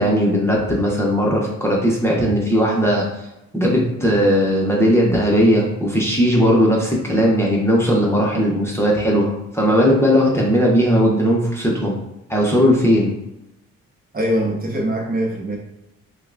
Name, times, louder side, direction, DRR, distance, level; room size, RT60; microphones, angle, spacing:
voice 1, 0.0-3.0 3.5-11.9 12.3-13.1, equal, 10° left, -3 dB, 0.9 m, -17 dB
voice 2, 14.1-15.6, equal, 30° right, -1 dB, 1.0 m, -22 dB
5.5 x 2.3 x 2.5 m, 0.91 s
cardioid pair, 90°, 30 cm